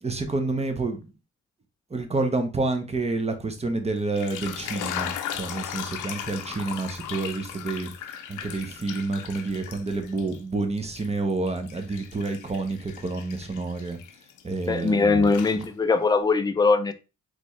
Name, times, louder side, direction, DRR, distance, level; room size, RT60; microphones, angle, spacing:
voice 1, 0.0-1.1 1.9-7.9 8.3-14.0 14.4-15.7, right 3 dB, 20° right, 0.9 m, -29 dB
sound 1, 4.0-10.4 10.8-14.9 15.2-16.0, left 10 dB, 85° left, 0.6 m, -37 dB
voice 2, 14.7-16.9, left 4 dB, 15° left, 0.5 m, -21 dB
4.1 x 3.1 x 3.2 m
cardioid pair, 90°, 30 cm